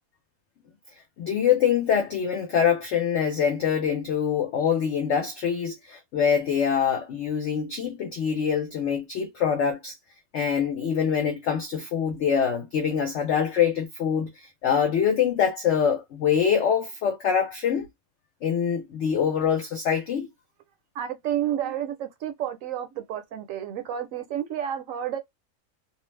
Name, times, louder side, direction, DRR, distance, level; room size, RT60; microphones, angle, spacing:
voice 1, 1.2-9.9 10.3-14.3 14.6-17.9 18.4-20.3, left 7 dB, 65° left, 0.7 m, -24 dB
voice 2, 20.9-25.2, right 10 dB, 65° right, 0.9 m, -30 dB
2.5 x 2.0 x 3.1 m
omnidirectional pair, 1.6 m